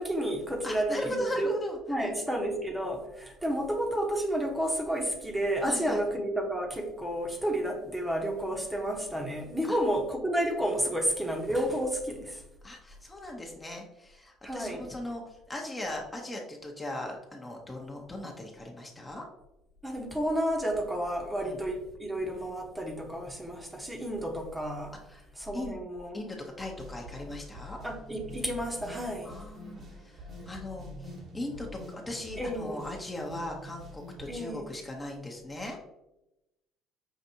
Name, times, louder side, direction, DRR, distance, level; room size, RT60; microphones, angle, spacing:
voice 1, 0.0-1.5 1.9-12.4 14.4-14.8 19.8-24.9 25.4-26.2 27.8-29.4 32.4-32.8 34.3-34.7, right 1 dB, 10° right, 1 dB, 0.9 m, -31 dB
voice 2, 0.6-2.1 5.7-6.0 9.7-9.8 12.6-19.2 21.4-21.6 25.0-25.3 25.5-25.8 26.1-27.8 29.2-35.8, left 1 dB, 20° left, 0 dB, 0.8 m, -38 dB
sound 1, 26.6-34.3, left 1 dB, 50° right, 1.2 m, -47 dB
Alarm, 28.7-34.4, left 2 dB, 75° left, 0.7 m, -52 dB
5.6 x 2.5 x 2.7 m, 0.91 s
hypercardioid pair, 70°, 0 cm